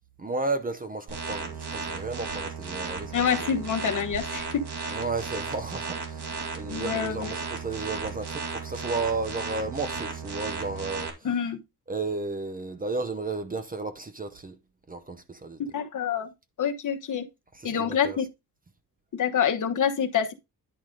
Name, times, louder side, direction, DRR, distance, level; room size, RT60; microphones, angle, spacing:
voice 1, 0.2-3.1 3.4-3.6 4.9-11.3 11.9-14.6 14.9-15.6 17.5-18.2, right 3 dB, 20° right, 0.7 m, -33 dB
sound 1, 1.1-11.1, right 5 dB, 85° right, 2.2 m, -35 dB
voice 2, 3.1-4.9 6.7-7.3 11.2-11.6 15.6-16.3 16.6-17.2 17.6-18.2 19.1-20.3, left 7 dB, 50° left, 1.1 m, -27 dB
10.5 x 4.9 x 3.8 m
wide cardioid pair, 170°, 39 cm